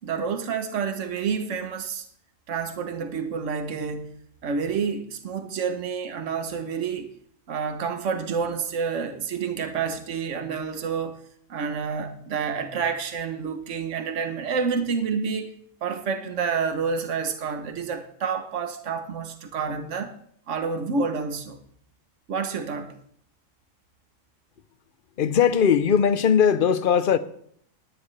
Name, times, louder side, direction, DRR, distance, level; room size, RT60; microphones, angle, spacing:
voice 1, 0.0-2.0 2.5-4.1 4.4-7.1 7.5-11.2 11.5-15.5 15.8-20.1 20.5-21.6 22.3-22.9, right 5 dB, 70° right, 1.4 m, -29 dB
voice 2, 25.2-27.2, left 7 dB, 50° left, 0.8 m, -19 dB
19.5 x 9.6 x 3.3 m
omnidirectional pair, 1.3 m